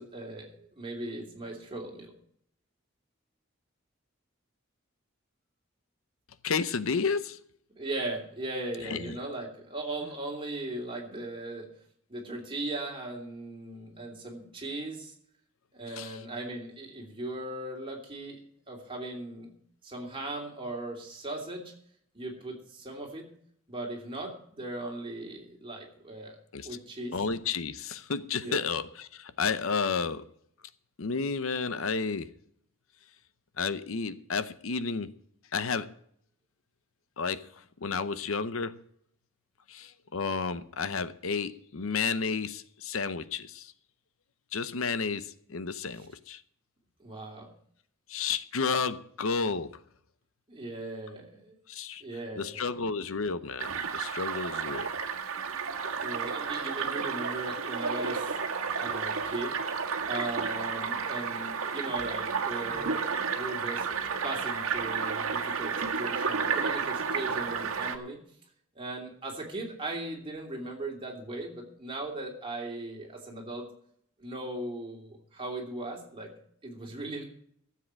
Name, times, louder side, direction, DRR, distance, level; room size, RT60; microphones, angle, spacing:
voice 1, 0.0-2.1 7.7-11.7 12.1-15.1 15.7-18.4 18.7-19.5 19.8-21.7 22.1-23.3 23.7-26.4 26.6-27.2 28.4-28.6 45.9-46.1 47.0-47.5 50.5-51.6 52.0-52.7 56.0-58.3 58.8-59.6 60.0-63.0 63.3-63.9 64.2-68.2 68.7-73.7 74.2-76.3 76.6-77.2, right 2 dB, 25° right, 3.0 m, -38 dB
voice 2, 6.4-7.4 8.8-9.2 16.0-16.2 26.5-26.8 27.1-30.3 31.0-32.3 33.6-35.1 35.5-35.9 37.2-37.5 37.8-38.8 39.7-43.7 44.5-46.4 48.1-49.8 51.7-52.0 52.4-54.9, left 5 dB, 70° left, 0.7 m, -31 dB
sound 1, 53.6-68.0, right 5 dB, 80° right, 1.6 m, -32 dB
13.0 x 7.7 x 7.6 m
head